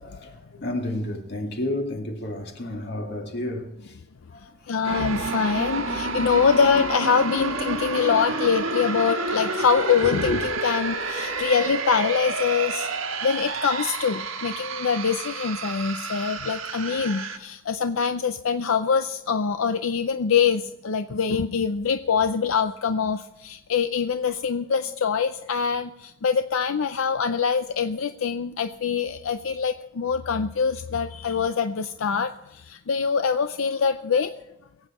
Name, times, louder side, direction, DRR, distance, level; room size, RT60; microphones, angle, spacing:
voice 1, 0.2-3.9 4.3-4.8 6.3-6.5 8.7-8.8 10.3-10.4, left 1 dB, 55° left, 2.1 m, -31 dB
voice 2, 4.7-12.9 13.2-34.3, left 6 dB, 90° left, 0.5 m, -24 dB
sound 1, 4.8-17.4, right 3 dB, 85° right, 1.5 m, -29 dB
23.0 x 8.4 x 4.3 m
head